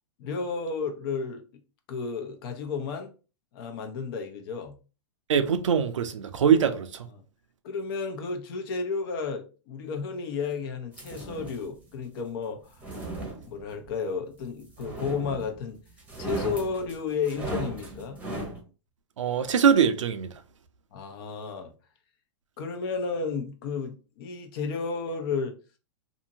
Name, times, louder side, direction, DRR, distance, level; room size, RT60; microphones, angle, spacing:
voice 1, 0.2-1.4 1.9-3.1 3.5-4.8 7.6-12.8 13.4-15.8 16.2-18.2 20.9-21.7 22.6-25.6, left 5 dB, 50° left, 0.8 m, -32 dB
voice 2, 5.3-7.1 19.2-20.3, right 7 dB, 90° right, 0.5 m, -22 dB
sound 1, 10.9-11.7 12.6-13.9 14.8-15.6 16.0-18.6, right 1 dB, 10° right, 0.9 m, -36 dB
2.7 x 2.6 x 2.7 m
hypercardioid pair, 135°, 16 cm